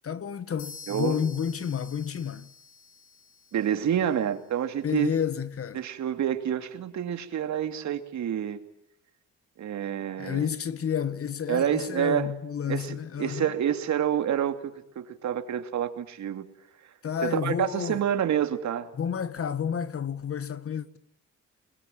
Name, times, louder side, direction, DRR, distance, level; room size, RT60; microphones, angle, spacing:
voice 1, 0.0-2.5 4.8-5.8 10.2-13.5 17.0-18.0 18.9-21.0, left 8 dB, 50° left, 1.7 m, -30 dB
sound 1, 0.6-4.3, left 4 dB, 90° left, 4.7 m, -49 dB
voice 2, 0.9-1.2 3.5-5.1 5.7-8.6 9.6-10.5 11.5-12.3 12.7-16.4 17.2-18.9, right 9 dB, 65° right, 2.9 m, -28 dB
29.0 x 21.0 x 9.4 m
cardioid pair, 90°, 30 cm